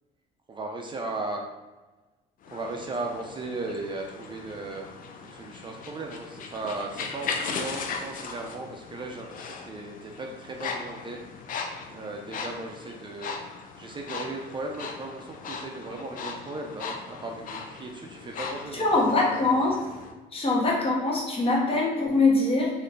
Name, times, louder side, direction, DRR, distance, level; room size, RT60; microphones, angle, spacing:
voice 1, 0.5-1.4 2.5-4.9 5.2-11.2 11.9-13.4 13.8-18.9, right 2 dB, 30° right, 1 dB, 0.5 m, -36 dB
sound 1, 2.4-20.1, left 5 dB, 55° left, 0.6 m, -38 dB
voice 2, 18.7-19.7 20.3-22.7, left 2 dB, 35° left, -3 dB, 1.4 m, -23 dB
4.2 x 3.1 x 3.8 m, 1.2 s
cardioid pair, 110°, 17 cm